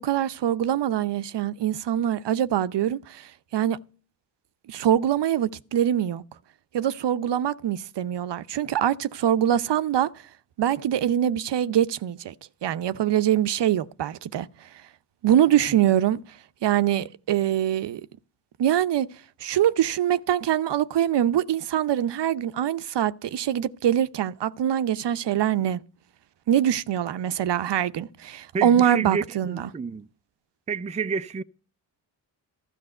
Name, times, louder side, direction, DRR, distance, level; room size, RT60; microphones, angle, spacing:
voice 1, 0.0-3.8 4.7-6.2 6.7-10.1 10.6-12.3 12.6-14.5 15.2-16.2 16.6-18.0 18.6-19.1 19.4-25.8 26.5-29.7, right 10 dB, 55° right, 0.7 m, -24 dB
voice 2, 28.5-30.1 30.7-31.4, right 5 dB, 15° right, 0.4 m, -30 dB
12.5 x 5.3 x 7.6 m
supercardioid pair, 45°, 49 cm